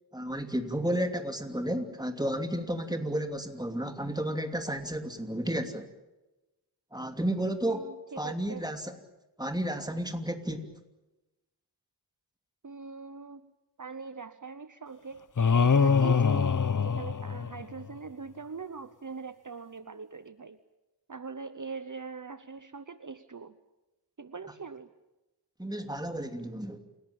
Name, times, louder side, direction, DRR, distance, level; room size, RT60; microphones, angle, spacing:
voice 1, 0.1-5.9 6.9-7.8 8.2-8.9 9.4-10.7 25.6-26.8, right 1 dB, 10° right, 6 dB, 2.8 m, -32 dB
voice 2, 7.6-8.6 12.6-13.5 13.8-15.2 15.8-20.6 21.1-23.6 24.2-24.9, right 5 dB, 50° right, 12 dB, 0.9 m, -42 dB
sound 1, 15.4-17.9, left 5 dB, 50° left, 0.7 m, -24 dB
28.5 x 17.5 x 8.8 m, 1.0 s
wide cardioid pair, 45°, 41 cm